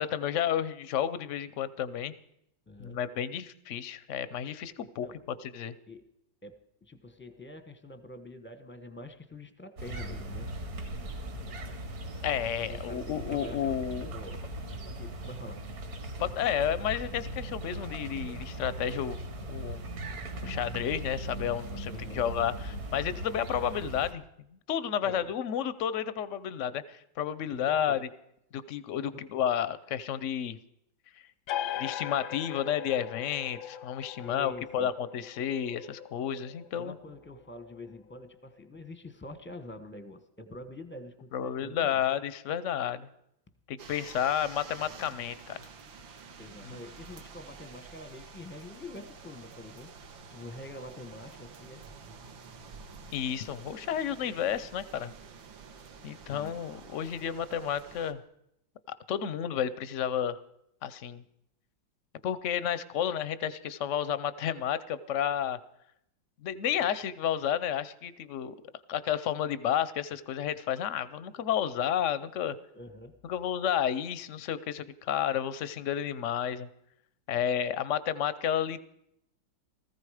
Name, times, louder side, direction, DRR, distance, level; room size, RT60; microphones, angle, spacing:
voice 1, 0.0-2.1 2.8-5.1 5.4-5.7 12.2-14.1 16.2-19.2 19.5-19.8 20.4-24.2 24.7-28.1 28.5-30.6 31.8-37.0 41.3-43.1 43.7-45.7 46.6-46.8 53.1-55.1 56.0-58.2 59.1-60.4 60.8-61.2 62.2-65.6 66.4-68.5 68.9-72.6 73.3-76.7 77.3-78.9, left 9 dB, 65° left, 16 dB, 0.7 m, -31 dB
voice 2, 2.7-3.0 4.8-5.2 5.9-6.1 6.4-10.5 12.7-14.7 14.9-15.6 21.9-22.2 25.0-25.2 27.5-28.0 34.2-34.9 36.7-42.0 46.4-49.9 50.3-51.8 56.3-56.6 72.7-73.2 77.3-77.4, left 1 dB, 10° left, 9 dB, 0.6 m, -46 dB
sound 1, 9.8-24.1, right 1 dB, 50° right, 1.9 m, -39 dB
sound 2, 31.5-38.7, left 11 dB, 90° left, 1.6 m, -41 dB
sound 3, 43.8-58.1, right 5 dB, 75° right, 2.0 m, -49 dB
19.0 x 14.5 x 4.9 m, 0.76 s
omnidirectional pair, 2.1 m